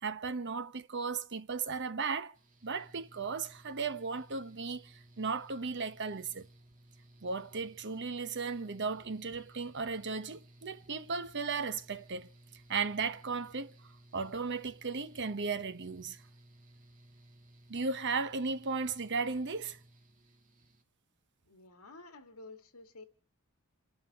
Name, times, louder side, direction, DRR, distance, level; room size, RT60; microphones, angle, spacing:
voice 1, 0.0-2.3 2.6-6.5 7.2-12.3 12.7-13.7 14.1-16.2 17.7-19.8, right 4 dB, 55° right, 1.0 m, -36 dB
Mechanical fan, 2.3-20.8, right 1 dB, 35° right, 2.1 m, -59 dB
voice 2, 21.4-23.0, left 2 dB, 80° left, 2.3 m, -51 dB
29.0 x 11.5 x 4.2 m
head